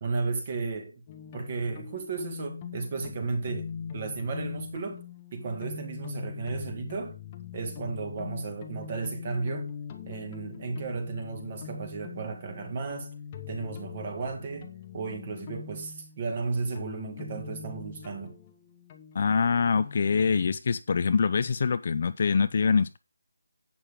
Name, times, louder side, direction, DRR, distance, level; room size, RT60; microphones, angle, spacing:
voice 1, 0.0-1.0 1.3-5.0 5.3-7.2 7.5-9.7 10.1-13.1 13.5-18.4, right 4 dB, 25° right, 2.0 m, -34 dB
sound 1, 1.1-20.6, left 7 dB, 15° left, 1.0 m, -42 dB
voice 2, 19.1-23.0, left 5 dB, 35° left, 0.5 m, -24 dB
11.0 x 8.6 x 3.7 m
figure-of-eight pair, 175°, 0 cm